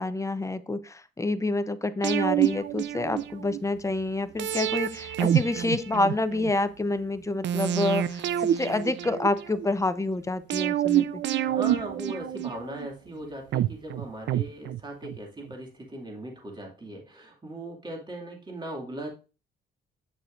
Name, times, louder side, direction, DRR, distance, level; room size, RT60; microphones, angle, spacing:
voice 1, 0.0-11.2, left 2 dB, 15° left, 12 dB, 0.7 m, -28 dB
sound 1, 2.0-3.6 4.4-6.5 7.4-9.7 10.5-12.9 13.5-15.2 15.5-15.6, right 11 dB, 65° right, 0.4 m, -27 dB
voice 2, 11.4-19.1, right 1 dB, 25° right, 0 dB, 2.3 m, -38 dB
8.2 x 6.7 x 2.5 m, 0.31 s
cardioid pair, 90°, 20 cm